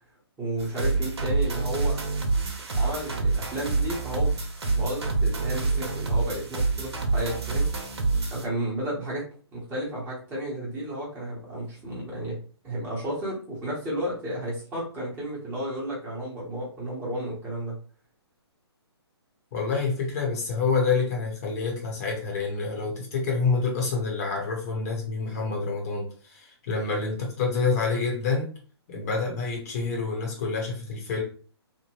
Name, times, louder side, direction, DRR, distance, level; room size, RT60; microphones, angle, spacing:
voice 1, 0.4-2.0 2.7-4.4 4.6-7.7 8.3-9.2 9.5-12.4 12.6-17.8, right 1 dB, 15° right, -6 dB, 1.1 m, -32 dB
sound 1, 0.6-8.5, right 3 dB, 70° right, 0.9 m, -27 dB
voice 2, 19.5-28.5 28.9-31.2, left 4 dB, 35° left, 0 dB, 0.9 m, -27 dB
3.0 x 2.1 x 3.0 m, 0.40 s
hypercardioid pair, 145°, 14 cm